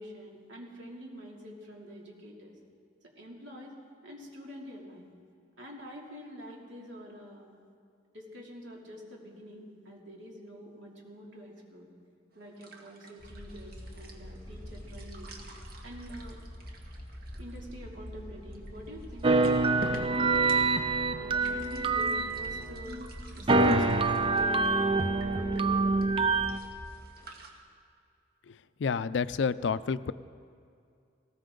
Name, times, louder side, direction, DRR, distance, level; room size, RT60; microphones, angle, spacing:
voice 1, 0.0-2.5 3.2-3.7 4.0-5.1 5.6-7.5 8.1-11.9 12.3-15.3 15.8-16.4 17.4-19.4 19.9-20.7 21.2-23.0 23.3-26.1 26.9-27.0, equal, 75° right, -2 dB, 2.8 m, -46 dB
sound 1, 12.3-27.5, right 1 dB, 55° right, 1.8 m, -50 dB
sound 2, 13.2-26.9, equal, 35° left, 2.3 m, -45 dB
sound 3, 19.2-23.1 23.5-26.6, right 3 dB, 30° right, 0.5 m, -26 dB
voice 2, 28.8-30.1, left 5 dB, 65° left, 16 dB, 0.4 m, -29 dB
19.0 x 17.0 x 3.9 m, 2.4 s
head